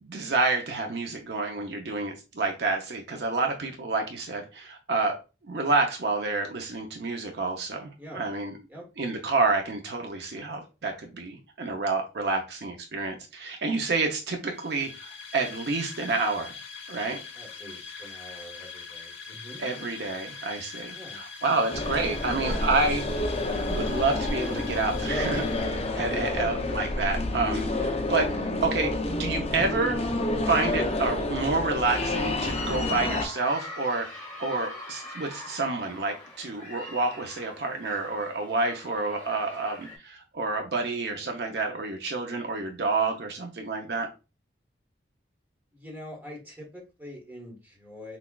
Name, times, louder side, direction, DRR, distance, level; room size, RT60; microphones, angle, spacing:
voice 1, 0.0-5.2 5.5-8.6 9.0-16.6 16.9-17.2 19.6-23.0 23.7-28.9 29.2-30.0 30.4-44.1, right 3 dB, 60° right, 0.6 m, -29 dB
sound 1, 14.5-26.3, left 5 dB, 80° left, 1.2 m, -42 dB
voice 2, 17.3-19.6 20.9-21.2 26.1-26.5 45.7-48.2, equal, 10° right, 1.1 m, -43 dB
sound 2, 21.7-33.3, left 2 dB, 35° left, 0.5 m, -29 dB
sound 3, 30.2-40.0, left 1 dB, 5° left, 1.3 m, -44 dB
5.8 x 2.3 x 2.2 m
head